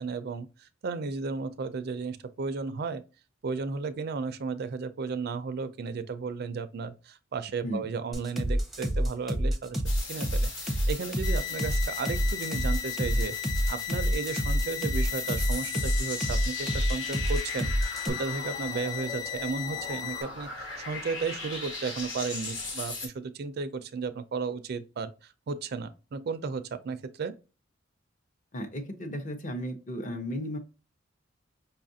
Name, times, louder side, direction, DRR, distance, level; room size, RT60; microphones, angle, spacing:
voice 1, 0.0-3.0 3.4-9.8 10.1-13.4 13.7-27.4, right 4 dB, 55° right, 0.4 m, -34 dB
sound 1, 8.1-18.1, equal, ahead, 0.6 m, -27 dB
sound 2, 9.8-23.1, left 3 dB, 85° left, 1.4 m, -40 dB
sound 3, 11.2-20.2, left 12 dB, 70° left, 0.9 m, -36 dB
voice 2, 28.5-30.6, equal, 40° left, 0.7 m, -34 dB
5.4 x 2.4 x 2.6 m
head